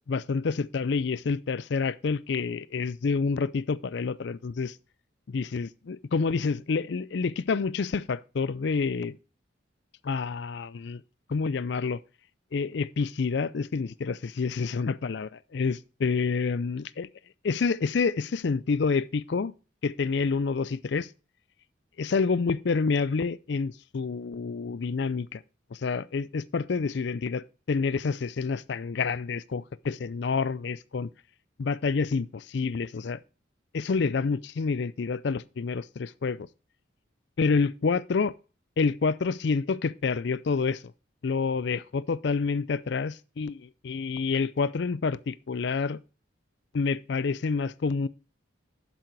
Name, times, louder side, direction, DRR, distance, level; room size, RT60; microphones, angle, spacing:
voice 1, 0.1-4.7 5.3-9.2 10.0-11.0 11.3-12.0 12.5-17.1 17.4-19.5 19.8-21.1 22.0-25.4 25.7-31.1 31.6-33.2 33.7-36.5 37.4-38.3 38.8-40.8 41.2-46.0 46.7-48.1, left 4 dB, 55° left, 0.4 m, -28 dB
7.8 x 7.0 x 4.6 m
head